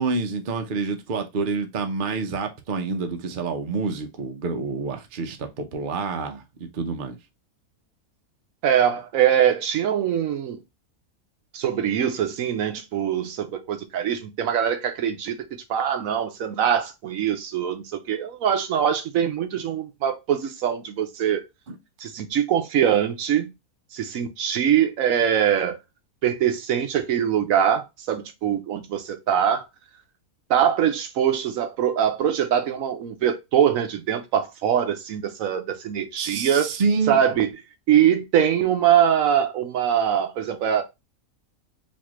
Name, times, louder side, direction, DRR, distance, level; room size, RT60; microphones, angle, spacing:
voice 1, 0.0-7.2 21.7-21.8 36.2-37.2, right 4 dB, 50° right, 0.7 m, -28 dB
voice 2, 8.6-10.6 11.5-15.4 15.7-21.4 22.0-23.5 23.9-25.8 26.2-29.6 30.5-36.7 37.1-37.5 37.9-40.8, right 9 dB, 70° right, 1.0 m, -23 dB
4.1 x 2.5 x 2.9 m
omnidirectional pair, 1.5 m